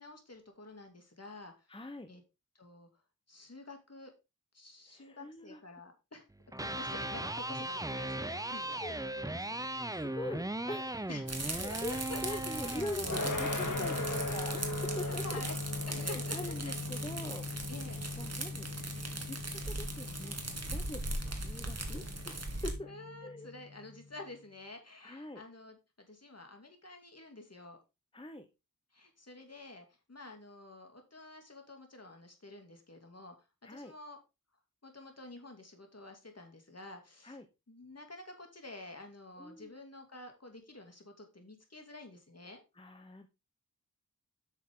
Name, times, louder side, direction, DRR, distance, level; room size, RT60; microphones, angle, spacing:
voice 1, 0.0-1.8 2.1-2.2 2.5-2.9 3.3-4.1 4.5-6.2 6.6-8.8 9.2-9.6 11.1-11.2 11.7-12.4 15.0-15.6 15.9-16.8 17.7-18.0 22.9-27.8 28.9-33.4 33.7-34.2 34.8-37.4 37.7-42.6, left 2 dB, 45° left, 4 dB, 2.6 m, -49 dB
voice 2, 1.7-2.1 4.9-5.6 8.7-8.9 9.9-11.1 11.4-11.9 12.2-15.4 15.9-17.5 18.2-18.7 19.2-20.4 20.7-22.9 23.2-23.5 25.0-25.4 28.1-28.5 33.6-33.9 37.2-37.5 39.4-39.7 42.7-43.3, left 1 dB, 15° left, 7 dB, 0.9 m, -43 dB
Electric guitar, 6.4-14.5, right 1 dB, 10° right, 0.7 m, -38 dB
sound 1, 11.3-22.7, right 2 dB, 45° right, 2.0 m, -40 dB
sound 2, 13.0-24.0, left 2 dB, 60° left, 1.7 m, -39 dB
8.5 x 6.5 x 3.7 m, 0.26 s
wide cardioid pair, 45°, 34 cm